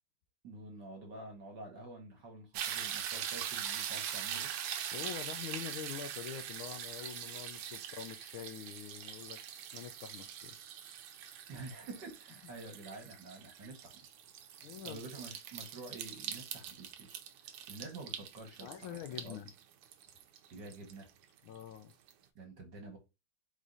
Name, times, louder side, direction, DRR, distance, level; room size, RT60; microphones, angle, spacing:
voice 1, 0.4-4.5 11.5-14.1 14.8-17.2 17.7-19.0 19.2-19.4 20.5-21.1 22.4-23.0, right 2 dB, 55° right, 1.8 m, -48 dB
sound 1, 2.5-21.6 22.1-22.2, right 9 dB, 85° right, 1.5 m, -42 dB
voice 2, 4.9-9.4 9.7-10.6 14.6-15.1 18.6-19.5 21.4-22.0, left 9 dB, 80° left, 1.4 m, -45 dB
4.8 x 2.7 x 3.8 m
omnidirectional pair, 2.4 m